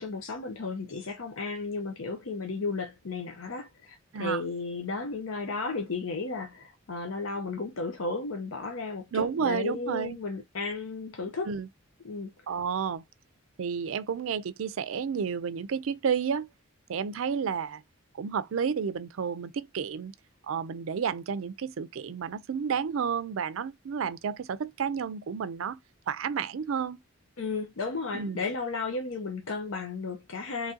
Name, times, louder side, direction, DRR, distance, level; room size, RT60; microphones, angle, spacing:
voice 1, 0.0-11.5 12.0-12.3 27.4-30.7, left 3 dB, 80° left, 0.7 m, -34 dB
voice 2, 9.1-10.2 11.5-11.7 12.5-13.0 13.6-16.5 16.9-17.8 18.2-20.1 20.5-25.8 26.1-27.0 28.1-28.4, right 6 dB, 75° right, 0.4 m, -31 dB
3.1 x 2.7 x 3.6 m
head